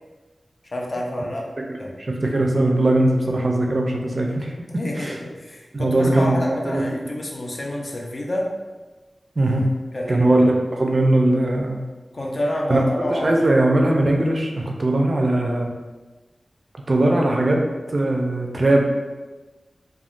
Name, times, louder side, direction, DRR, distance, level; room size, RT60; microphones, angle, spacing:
voice 1, 0.7-1.5 1.8-2.0 4.7-8.5 9.9-10.4 12.1-13.6, left 1 dB, 45° left, -1 dB, 0.5 m, -28 dB
voice 2, 2.0-5.2 5.7-6.8 9.4-9.7 10.1-11.8 12.7-12.8 13.1-15.7 16.9-17.6 17.9-18.9, right 1 dB, 45° right, 1 dB, 0.4 m, -20 dB
3.5 x 2.2 x 2.4 m, 1.2 s
wide cardioid pair, 90°, 0 cm